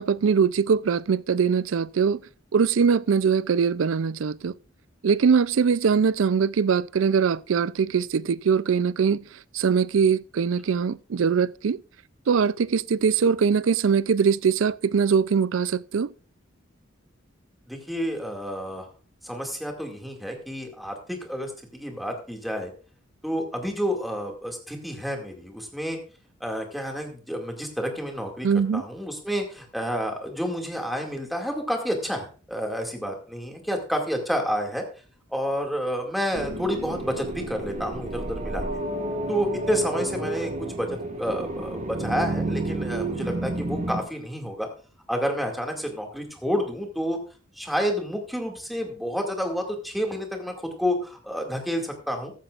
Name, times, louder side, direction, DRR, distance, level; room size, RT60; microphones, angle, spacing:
voice 1, 0.0-2.2 2.5-4.5 5.0-9.2 9.5-11.8 12.3-16.1 28.4-28.8, right 6 dB, 75° right, 0.4 m, -22 dB
voice 2, 17.7-18.9 19.2-22.7 23.2-26.0 26.4-28.5 28.7-34.8 35.3-38.6 39.3-44.7 45.1-47.2 47.6-52.3, equal, ahead, 2.2 m, -29 dB
sound 1, 36.3-44.0, right 2 dB, 35° right, 1.7 m, -31 dB
15.0 x 12.0 x 2.5 m
head